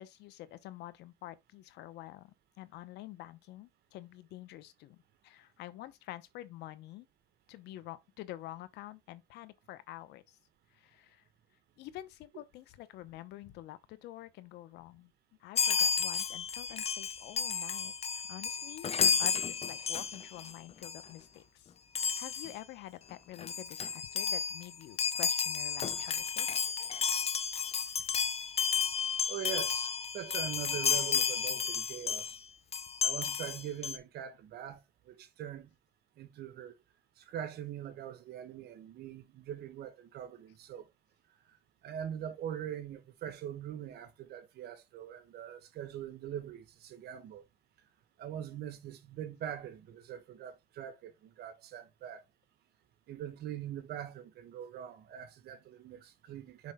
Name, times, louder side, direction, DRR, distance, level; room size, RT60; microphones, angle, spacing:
voice 1, 0.0-7.1 7.5-10.4 10.7-11.2 11.8-15.1 15.4-21.7 22.2-26.5, left 15 dB, 85° left, 0.9 m, -48 dB
Chime, 15.5-20.5 20.8-21.0 21.9-22.5 23.1-23.2 23.4-32.4 32.7-34.0, left 6 dB, 35° left, 0.7 m, -32 dB
voice 2, 29.3-32.4 33.0-35.7 36.2-36.8 37.2-40.8 41.8-47.4 48.2-52.2 53.1-56.7, right 10 dB, 70° right, 1.3 m, -42 dB
6.2 x 4.7 x 3.6 m
cardioid pair, 110°, 17 cm